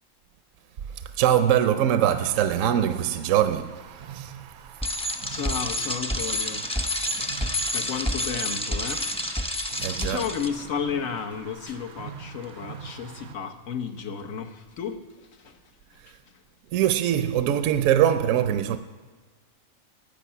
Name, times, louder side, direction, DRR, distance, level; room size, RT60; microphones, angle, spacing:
voice 1, 0.8-4.9 7.0-7.2 9.8-10.2 16.0-16.2 16.7-18.8, right 10 dB, 75° right, 0.9 m, -23 dB
sound 1, 2.1-13.4, right 8 dB, 60° right, 0.5 m, -45 dB
Bicycle, 4.8-10.5, left 1 dB, 5° left, 0.6 m, -29 dB
voice 2, 5.3-9.5 9.9-16.4, left 7 dB, 75° left, 1.4 m, -34 dB
14.5 x 8.7 x 5.6 m
omnidirectional pair, 1.4 m